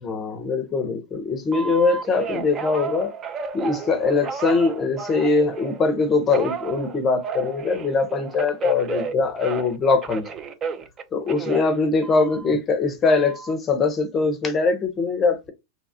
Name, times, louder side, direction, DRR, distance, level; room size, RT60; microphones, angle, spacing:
voice 1, 0.0-3.1 3.5-10.2 11.1-15.5, left 4 dB, 25° left, 0.6 m, -22 dB
Telephone, 1.5-5.8 6.3-9.8 10.0-12.5 13.0-13.5, right 5 dB, 25° right, 0.4 m, -33 dB
2.8 x 2.3 x 2.7 m
hypercardioid pair, 120°, 0 cm